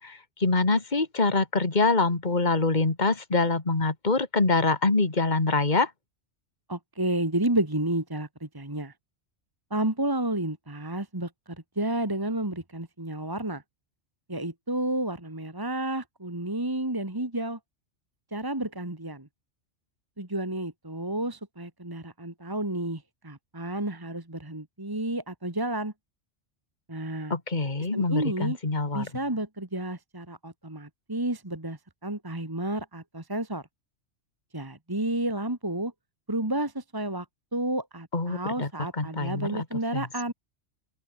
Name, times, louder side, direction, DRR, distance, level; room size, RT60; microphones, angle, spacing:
voice 1, 0.0-5.9 27.3-29.1 38.1-39.6 39.9-40.1, left 3 dB, 40° left, 2.7 m, -25 dB
voice 2, 6.7-8.9 9.7-11.3 11.8-13.6 14.3-17.6 18.3-19.3 20.2-25.9 26.9-27.3 27.9-28.6 28.9-33.6 34.5-35.9 36.3-37.3 37.5-40.3, right 1 dB, 20° right, 2.1 m, -31 dB
open air
omnidirectional pair, 1.2 m